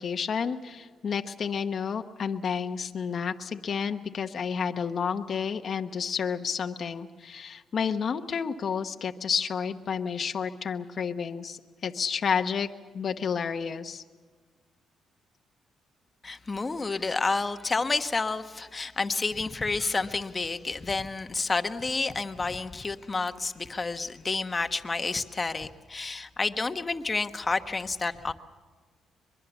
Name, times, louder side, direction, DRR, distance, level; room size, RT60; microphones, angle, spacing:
voice 1, 0.0-12.7 12.9-14.0, left 6 dB, 50° left, 6 dB, 1.0 m, -30 dB
voice 2, 16.2-28.3, left 3 dB, 25° left, 8 dB, 1.2 m, -30 dB
23.0 x 22.5 x 7.2 m, 1.4 s
cardioid pair, 90°, 0 cm